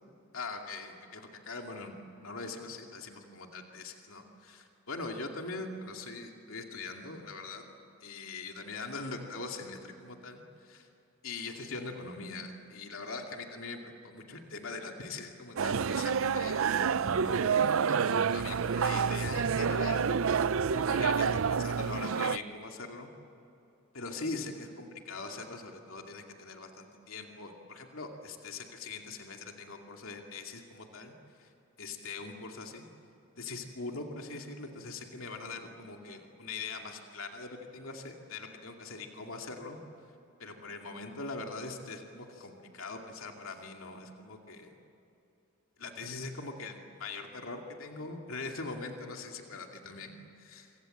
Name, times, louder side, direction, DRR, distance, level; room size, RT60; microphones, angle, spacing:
voice 1, 0.3-1.9 2.2-7.6 8.0-10.9 11.2-23.1 23.9-31.1 31.4-31.5 31.8-32.9 33.4-39.8 40.4-44.7 45.8-50.7, left 3 dB, 75° left, 2 dB, 2.5 m, -42 dB
sound 1, 15.6-22.4, right 6 dB, 70° right, 0.5 m, -28 dB
27.0 x 25.0 x 7.9 m, 2.9 s
head